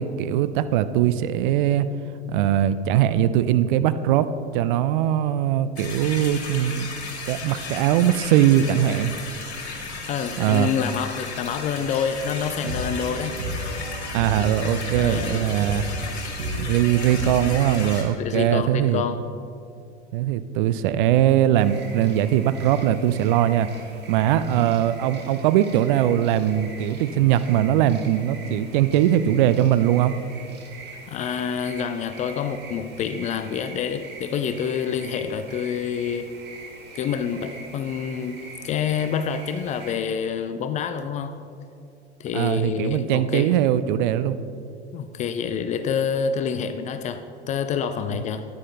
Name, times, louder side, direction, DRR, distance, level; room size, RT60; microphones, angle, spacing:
voice 1, 0.0-1.9 2.3-6.9 7.3-9.1 10.4-10.7 14.1-15.9 16.6-19.0 20.1-23.7 24.1-30.1 42.3-44.4, right 11 dB, 50° right, 13 dB, 0.5 m, -21 dB
sound 1, 5.8-18.0, left 4 dB, 70° left, 1.9 m, -35 dB
voice 2, 10.1-13.4 14.9-15.7 18.2-19.2 31.1-36.3 36.9-41.3 42.2-43.5 44.9-47.2 47.5-48.5, left 7 dB, 25° left, 10 dB, 0.4 m, -27 dB
sound 2, 12.4-17.8, equal, 75° right, 1.8 m, -32 dB
sound 3, 21.5-39.9, right 3 dB, 30° right, 1.6 m, -43 dB
14.0 x 9.8 x 2.9 m, 2.5 s
figure-of-eight pair, 80°, 34 cm